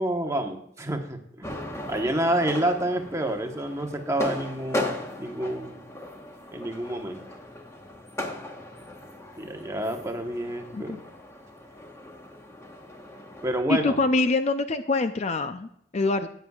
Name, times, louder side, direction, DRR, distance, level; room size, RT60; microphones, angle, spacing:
voice 1, 0.0-1.5 1.9-5.8 6.5-7.2 9.4-11.0 13.4-14.0, right 1 dB, 15° right, 3 dB, 1.1 m, -28 dB
sound 1, 1.4-13.6, left 1 dB, 15° left, 1.1 m, -37 dB
voice 2, 13.7-16.3, left 3 dB, 35° left, 9 dB, 0.5 m, -25 dB
13.5 x 9.3 x 2.4 m, 0.71 s
head